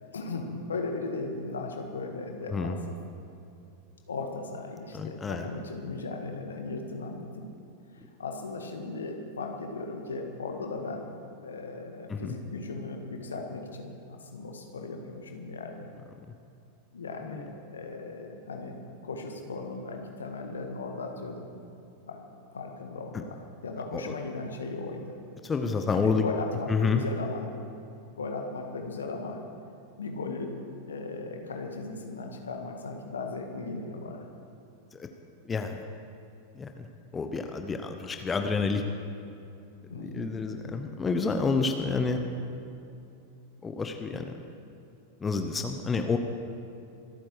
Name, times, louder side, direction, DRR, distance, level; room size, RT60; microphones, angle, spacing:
voice 1, 0.0-3.0 4.1-7.5 7.9-11.1 11.4-15.9 16.9-21.5 22.1-22.3 22.5-25.2 25.9-27.5 28.2-29.4 30.0-30.6 30.9-34.3 39.9-40.8, left 3 dB, 70° left, 3 dB, 1.7 m, -37 dB
voice 2, 4.9-5.5 12.1-12.3 17.3-17.5 23.9-24.0 25.4-26.2 26.7-27.0 34.9-35.1 35.5-35.9 36.6-36.8 37.1-38.8 40.0-42.2 43.6-44.4 45.2-46.2, left 4 dB, 15° left, 5 dB, 0.9 m, -29 dB
25.5 x 9.1 x 4.9 m, 2.7 s
figure-of-eight pair, 90°, 0 cm